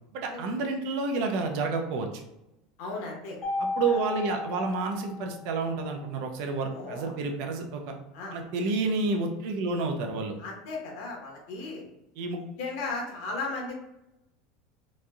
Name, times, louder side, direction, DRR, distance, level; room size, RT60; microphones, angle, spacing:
voice 1, 0.1-2.1 3.6-7.9 8.3-10.4 12.2-12.4, right 3 dB, 60° right, 3 dB, 0.4 m, -29 dB
voice 2, 2.8-3.4 3.9-4.0 6.7-7.1 8.1-8.4 10.4-11.8 12.3-13.7, left 3 dB, 60° left, -1 dB, 0.8 m, -36 dB
Mallet percussion, 3.4-5.7, left 3 dB, 15° left, 0.6 m, -34 dB
2.9 x 2.5 x 2.3 m, 0.89 s
supercardioid pair, 155°, 0 cm